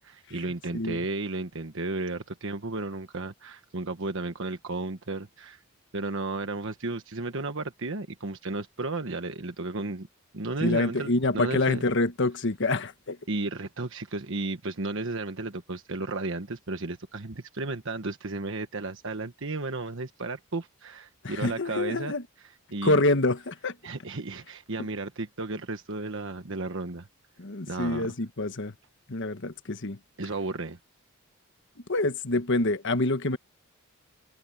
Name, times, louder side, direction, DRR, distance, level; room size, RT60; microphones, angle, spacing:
voice 1, 0.1-5.6 5.9-10.1 10.3-11.8 13.3-22.1 22.7-23.0 23.8-27.1 27.7-28.1 30.2-30.8, right 3 dB, 65° right, 1.3 m, -33 dB
voice 2, 10.6-13.2 21.2-22.2 22.8-23.8 27.4-28.7 29.1-30.0 31.9-33.4, left 2 dB, 60° left, 1.4 m, -26 dB
head